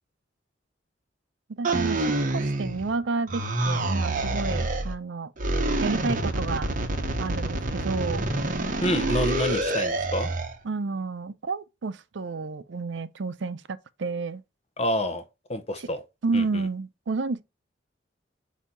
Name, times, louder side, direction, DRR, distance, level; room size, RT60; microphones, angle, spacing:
voice 1, 1.5-5.3 5.8-6.7 7.2-8.3 10.6-14.4 16.2-17.4, right 4 dB, 75° right, 0.5 m, -30 dB
sound 1, 1.6-3.0 3.3-4.9 5.4-10.6, right 2 dB, 45° right, 1.0 m, -27 dB
voice 2, 8.8-10.3 14.8-15.2 15.5-16.0 16.3-16.7, left 1 dB, 35° left, 0.7 m, -28 dB
8.2 x 2.8 x 4.2 m
head